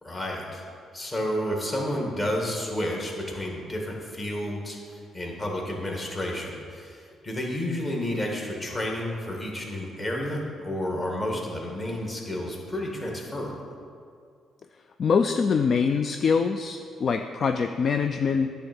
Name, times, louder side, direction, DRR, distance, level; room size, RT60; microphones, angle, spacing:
voice 1, 0.0-13.8, left 1 dB, 30° left, -1 dB, 1.9 m, -31 dB
voice 2, 15.0-18.5, left 5 dB, 50° left, 7 dB, 0.3 m, -24 dB
10.0 x 3.5 x 7.0 m, 2.2 s
cardioid pair, 90°, 0 cm